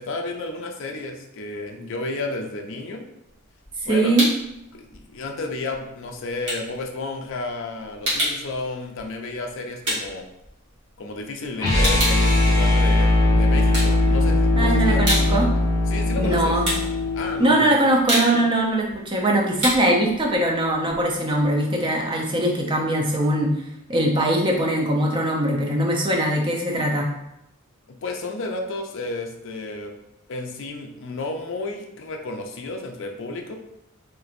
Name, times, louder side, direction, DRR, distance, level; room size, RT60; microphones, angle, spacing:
voice 1, 0.0-3.0 3.8-4.2 4.7-10.3 11.0-13.1 13.4-15.4 15.9-16.5 17.1-17.7 28.0-29.9 30.3-33.5, left 2 dB, 60° left, 3 dB, 0.5 m, -32 dB
sound 1, 3.3-4.6 4.9-11.1 11.4-13.2 13.6-14.5 14.8-21.5, equal, 55° right, 1.4 m, -29 dB
voice 2, 3.8-4.2 14.6-15.5 16.2-16.7 17.4-23.5 23.9-27.1, right 1 dB, 20° right, 0 dB, 0.5 m, -21 dB
sound 2, 11.6-17.6, left 2 dB, 15° left, 1.2 m, -19 dB
3.2 x 2.9 x 2.5 m, 0.83 s
head